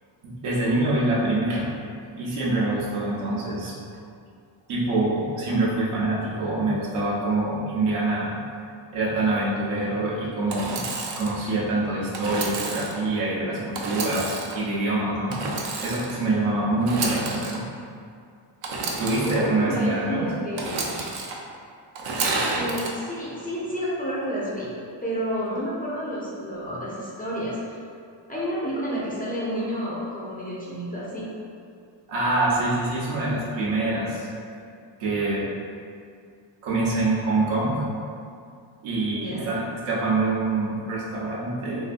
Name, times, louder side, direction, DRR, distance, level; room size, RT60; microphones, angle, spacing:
voice 1, 0.2-1.7 2.2-3.8 4.7-8.3 8.9-10.9 11.2-15.4 15.8-17.6 19.0-20.3 32.1-34.4 35.0-35.4 36.6-37.8 38.8-41.9, right 2 dB, 80° right, -6 dB, 0.9 m, -25 dB
Engine / Sawing, 10.5-11.3 12.1-13.0 13.7-14.6 15.3-16.2 16.8-17.6 18.6-19.4 20.6-21.3 21.9-22.9, right 3 dB, 60° right, 0.5 m, -30 dB
voice 2, 19.4-20.8 22.6-24.7 25.0-27.6 28.3-31.3 39.1-39.5, equal, 20° left, -8 dB, 0.4 m, -30 dB
2.7 x 2.6 x 2.5 m, 2.3 s
cardioid pair, 125°, 50 cm